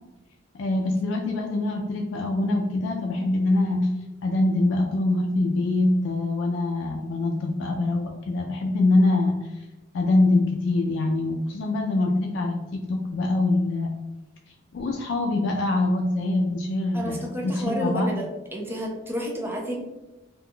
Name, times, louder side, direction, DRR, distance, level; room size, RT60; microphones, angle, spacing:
voice 1, 0.5-3.9 4.2-9.3 9.9-13.9 14.7-18.1, left 2 dB, 90° left, 1 dB, 0.3 m, -24 dB
voice 2, 16.9-18.3 18.5-19.8, equal, 10° right, 0 dB, 0.5 m, -30 dB
2.4 x 2.2 x 3.5 m, 1.1 s
head